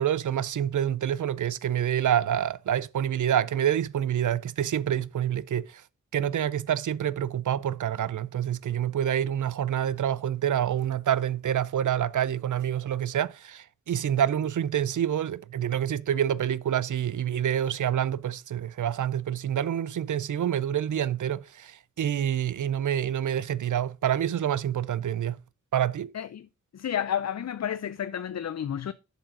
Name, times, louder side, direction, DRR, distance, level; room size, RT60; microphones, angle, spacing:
voice 1, 0.0-5.8 6.1-25.4 25.7-26.1, right 10 dB, 85° right, 0.5 m, -27 dB
voice 2, 26.1-26.5 26.7-28.9, left 9 dB, 60° left, 0.5 m, -31 dB
7.4 x 7.3 x 3.7 m
cardioid pair, 50°, 30 cm